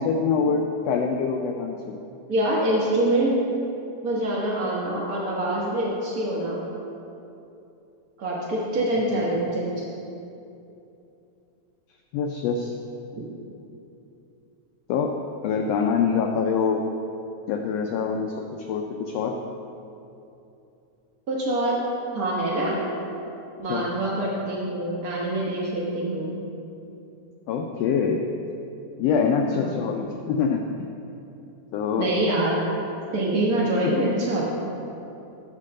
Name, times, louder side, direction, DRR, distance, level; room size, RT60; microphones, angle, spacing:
voice 1, 0.0-2.0 9.1-9.4 12.1-12.7 14.9-15.2 15.4-16.8 17.5-19.4 23.7-23.9 27.5-28.2 29.0-30.6 31.7-32.1 33.8-33.9, left 6 dB, 90° left, 2 dB, 1.4 m, -25 dB
voice 2, 2.3-3.4 4.0-6.6 8.2-9.8 13.2-13.3 21.3-21.8 22.1-22.9 23.6-26.4 29.5-29.8 32.0-32.6 33.1-34.5, right 1 dB, 80° right, -5 dB, 0.8 m, -25 dB
8.7 x 4.6 x 6.4 m, 2.8 s
omnidirectional pair, 3.4 m